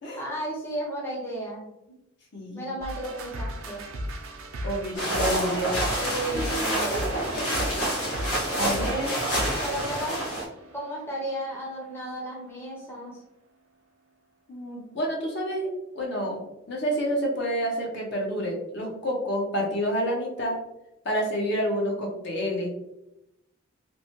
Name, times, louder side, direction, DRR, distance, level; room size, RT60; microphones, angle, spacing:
voice 1, 0.2-2.0 2.5-3.9 6.0-7.4 8.8-8.9 9.6-10.3 10.7-13.2, right 1 dB, 10° left, -4 dB, 0.6 m, -34 dB
voice 2, 2.3-2.7 4.6-5.8 6.3-6.6 6.9-7.8 8.6-9.2 14.5-15.7 15.9-16.4 16.7-20.6 21.0-22.7, equal, 55° left, -2 dB, 0.6 m, -29 dB
sound 1, 2.8-12.2, equal, 80° right, 0.5 m, -37 dB
sound 2, 4.9-10.5, right 1 dB, 85° left, 1.2 m, -28 dB
2.9 x 2.1 x 2.9 m, 0.88 s
head